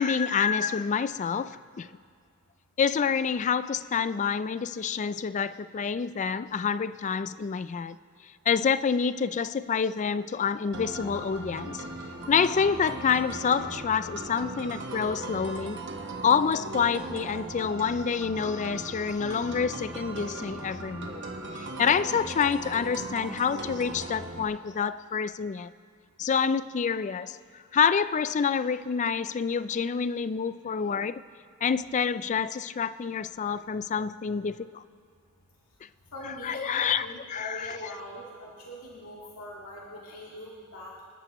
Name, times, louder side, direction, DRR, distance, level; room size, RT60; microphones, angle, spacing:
voice 1, 0.0-1.9 2.8-8.0 8.5-11.9 12.3-15.8 16.2-21.2 21.6-25.7 26.2-27.4 27.7-31.2 31.6-34.8 36.4-37.9, left 6 dB, 35° left, 0.3 m, -27 dB
sound 1, 10.7-24.4, right 2 dB, 60° right, 1.4 m, -38 dB
voice 2, 36.1-41.0, equal, 85° left, 2.0 m, -42 dB
27.0 x 12.0 x 3.1 m
head